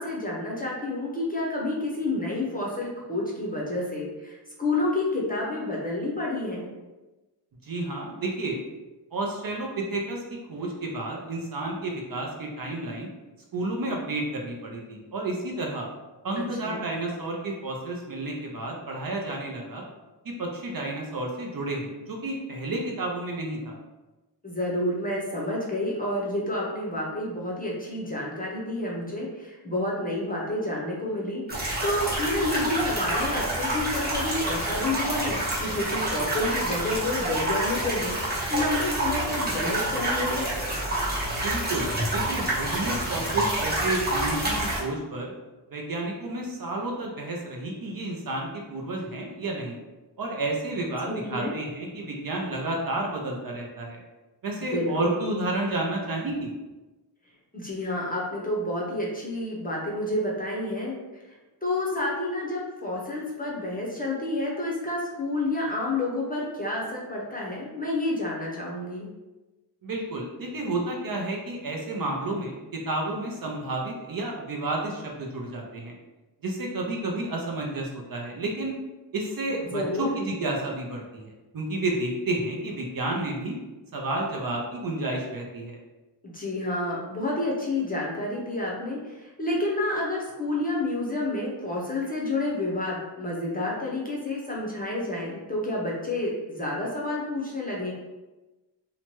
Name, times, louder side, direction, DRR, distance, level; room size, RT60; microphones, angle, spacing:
voice 1, 0.0-6.7 16.4-16.8 24.4-40.4 51.0-51.6 54.7-55.2 57.5-60.9 61.3-69.1 79.6-80.1 86.2-97.9, left 2 dB, 20° left, -4 dB, 0.6 m, -29 dB
voice 2, 7.6-8.6 9.1-13.1 13.5-15.9 16.2-19.8 20.2-23.8 41.4-45.3 45.7-49.8 50.2-54.0 54.4-56.5 69.8-76.0 76.4-78.7 79.1-83.6 83.9-85.8, right 2 dB, 50° right, 0 dB, 0.5 m, -31 dB
sound 1, 31.5-44.8, right 1 dB, 20° right, 0.9 m, -28 dB
2.8 x 2.2 x 2.9 m, 1.1 s
wide cardioid pair, 110°, 44 cm